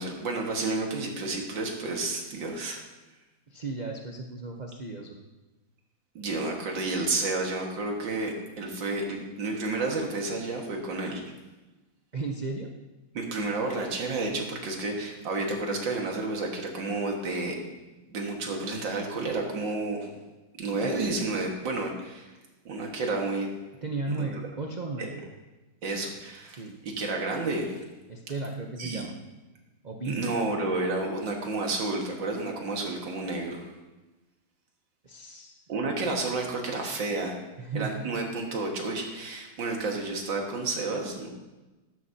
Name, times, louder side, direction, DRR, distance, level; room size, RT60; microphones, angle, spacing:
voice 1, 0.0-2.8 6.2-11.2 13.1-17.6 18.1-20.1 20.6-22.3 22.7-23.5 25.0-25.1 25.8-27.8 28.8-29.0 30.1-33.7 35.7-37.4 37.8-41.3, right 3 dB, 75° right, 1 dB, 2.4 m, -31 dB
voice 2, 3.5-5.2 12.1-12.7 20.8-21.2 23.8-25.3 26.5-26.8 28.1-29.1 29.8-30.3 35.0-35.6 37.6-38.1, right 3 dB, 50° right, 2 dB, 0.5 m, -35 dB
13.5 x 12.5 x 2.8 m, 1.1 s
omnidirectional pair, 2.1 m